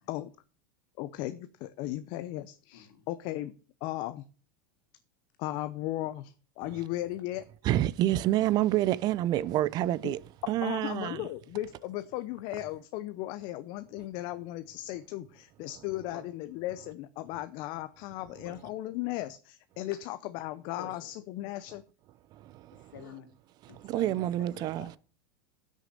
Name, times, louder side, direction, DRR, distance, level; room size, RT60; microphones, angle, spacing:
voice 1, 1.0-3.5 3.8-4.2 5.4-7.4 10.0-10.1 10.6-21.8, left 15 dB, 50° left, 0.7 m, -36 dB
voice 2, 7.6-10.2 10.5-11.3 22.3-22.9 23.7-24.9, right 14 dB, 40° right, 0.6 m, -28 dB
voice 3, 20.8-21.1 22.9-23.3 23.7-25.0, left 7 dB, 80° left, 2.8 m, -48 dB
11.0 x 6.5 x 6.8 m
supercardioid pair, 125°, 11 cm